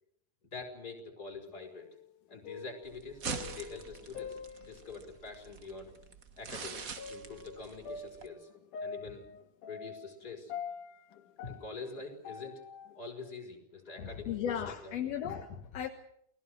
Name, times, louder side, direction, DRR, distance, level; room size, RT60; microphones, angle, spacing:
voice 1, 0.5-1.9 2.3-5.9 6.4-8.5 8.8-9.2 9.7-10.5 11.4-12.7 13.0-15.0, left 4 dB, 30° left, 1 dB, 5.7 m, -45 dB
sound 1, 1.5-2.1 2.3-5.1 5.9-6.0 7.0-13.0, left 5 dB, 80° left, 3.0 m, -45 dB
sound 2, 2.8-8.3, right 5 dB, 45° right, 1.1 m, -44 dB
voice 2, 14.0-15.9, left 9 dB, 60° left, 6 dB, 2.3 m, -36 dB
29.5 x 20.0 x 6.5 m, 0.72 s
omnidirectional pair, 3.5 m